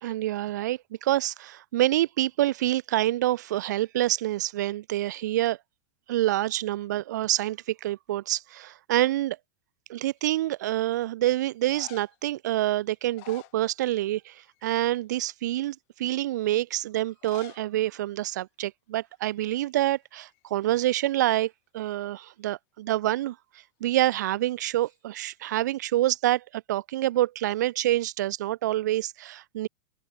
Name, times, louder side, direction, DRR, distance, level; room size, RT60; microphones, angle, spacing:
voice 1, 0.0-5.6 6.1-9.4 9.9-23.4 23.8-29.7, right 14 dB, 75° right, 0.7 m, -27 dB
sound 1, 10.0-10.5 11.5-12.3 12.9-14.2 14.4-14.8 15.4-15.5 17.1-17.7 18.0-18.1 18.2-18.3 19.1-19.3 19.6-20.8 24.8-25.4, left 30 dB, 45° left, 4.5 m, -50 dB
open air
supercardioid pair, 160°, 10 cm